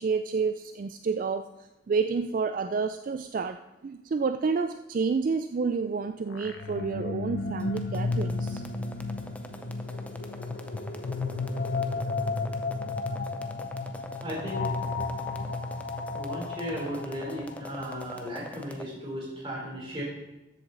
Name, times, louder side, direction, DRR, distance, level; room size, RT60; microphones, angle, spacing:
voice 1, 0.0-1.5 1.9-8.6, right 5 dB, 45° right, 9 dB, 0.3 m, -29 dB
sound 1, 5.6-7.2 7.7-7.8 9.1-13.9, left 1 dB, 75° left, 1.0 m, -47 dB
sound 2, 6.4-18.3, left 3 dB, 50° left, 0.7 m, -33 dB
sound 3, 7.6-18.9, left 1 dB, 5° left, 0.6 m, -45 dB
voice 2, 13.5-14.9 15.1-15.2 16.1-20.0, equal, 25° right, -4 dB, 3.5 m, -36 dB
13.5 x 7.8 x 4.0 m, 0.99 s
head